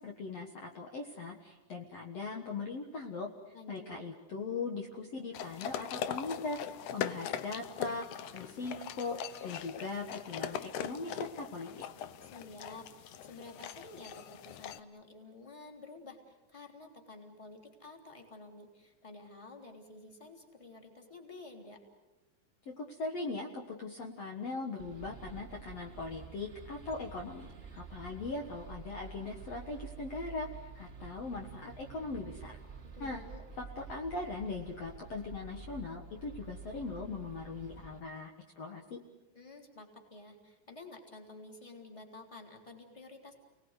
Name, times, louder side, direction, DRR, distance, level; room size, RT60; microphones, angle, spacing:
voice 1, 0.0-3.3 3.7-6.6 6.9-8.1 8.3-9.2 9.4-11.9 22.7-32.6 33.0-33.2 33.6-38.3 38.6-39.0, left 3 dB, 55° left, 1 dB, 2.4 m, -40 dB
voice 2, 3.5-4.0 12.2-21.8 32.9-33.4 39.3-43.4, left 2 dB, 10° left, 2 dB, 3.0 m, -51 dB
sound 1, 5.3-14.8, left 9 dB, 70° left, 2.2 m, -41 dB
sound 2, 24.8-38.0, right 5 dB, 35° right, 0.9 m, -49 dB
29.5 x 19.5 x 8.1 m, 1.2 s
omnidirectional pair, 3.9 m